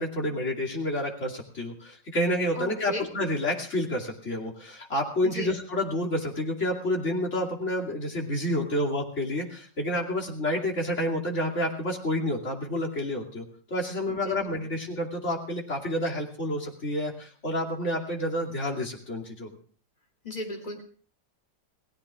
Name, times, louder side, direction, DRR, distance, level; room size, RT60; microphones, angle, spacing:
voice 1, 0.0-19.5, left 1 dB, 40° left, -2 dB, 2.9 m, -29 dB
voice 2, 2.5-3.1 5.2-5.5 14.1-14.5 20.2-20.8, left 1 dB, 20° left, 2 dB, 3.0 m, -36 dB
29.5 x 18.0 x 2.4 m, 0.42 s
omnidirectional pair, 1.9 m